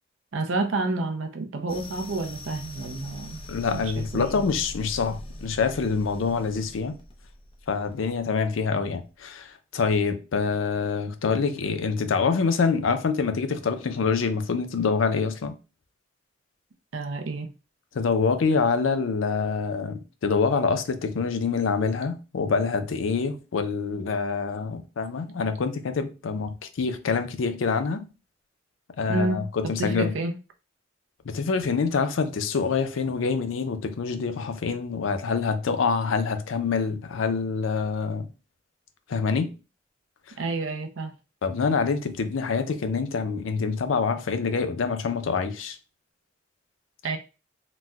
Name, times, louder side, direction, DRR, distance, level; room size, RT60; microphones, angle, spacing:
voice 1, 0.3-3.4 3.7-4.4 16.9-17.5 29.1-30.4 40.4-41.1 47.0-47.2, right 2 dB, 85° right, 0.5 m, -29 dB
sound 1, 1.7-9.2, left 1 dB, 30° left, 0.6 m, -42 dB
voice 2, 3.5-7.0 7.7-15.5 17.9-28.0 29.0-30.1 31.3-38.3 39.1-39.5 41.4-45.8, left 5 dB, 90° left, 0.5 m, -26 dB
4.0 x 2.1 x 2.3 m
head